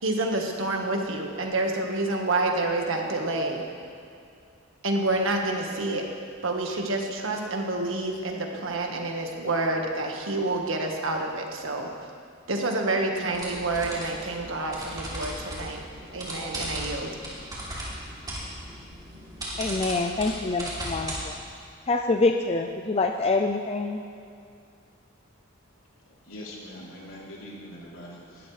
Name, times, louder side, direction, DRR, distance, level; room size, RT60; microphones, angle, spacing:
voice 1, 0.0-3.6 4.8-6.0 6.4-11.9 12.5-15.8 16.1-17.1, right 2 dB, 75° right, 2 dB, 1.6 m, -28 dB
sound 1, 13.3-21.2, right 1 dB, 20° right, 3.2 m, -37 dB
voice 2, 19.6-21.4 21.9-24.0, left 3 dB, 30° left, 4 dB, 0.5 m, -26 dB
voice 3, 26.2-28.5, equal, 80° left, -5 dB, 3.5 m, -43 dB
19.5 x 12.5 x 3.4 m, 2.4 s
head